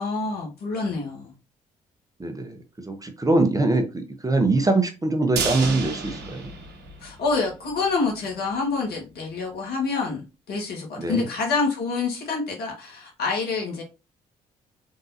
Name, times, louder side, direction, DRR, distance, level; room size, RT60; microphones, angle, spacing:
voice 1, 0.0-1.3 7.0-13.8, left 4 dB, 60° left, 0 dB, 1.7 m, -27 dB
voice 2, 2.2-6.5 11.0-11.3, right 2 dB, 20° right, 6 dB, 0.9 m, -23 dB
sound 1, 5.4-7.5 7.8-7.9 8.3-8.4, right 4 dB, 65° right, 1.0 m, -31 dB
3.8 x 3.7 x 2.7 m, 0.29 s
hypercardioid pair, 45°, 18 cm